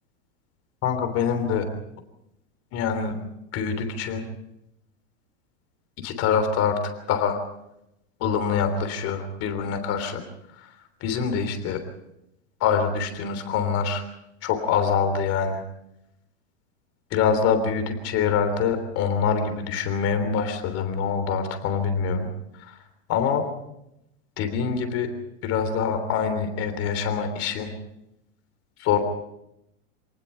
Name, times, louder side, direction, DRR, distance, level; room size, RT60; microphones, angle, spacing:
voice 1, 0.8-1.7 2.7-3.2 3.5-4.2 6.0-6.8 7.1-7.4 8.2-10.2 11.0-11.8 12.6-14.0 14.4-15.6 17.1-22.3 23.1-23.4 24.4-25.1 25.4-27.7 28.8-29.0, left 6 dB, 40° left, 8 dB, 3.4 m, -25 dB
27.5 x 19.0 x 5.7 m, 0.84 s
supercardioid pair, 145°, 38 cm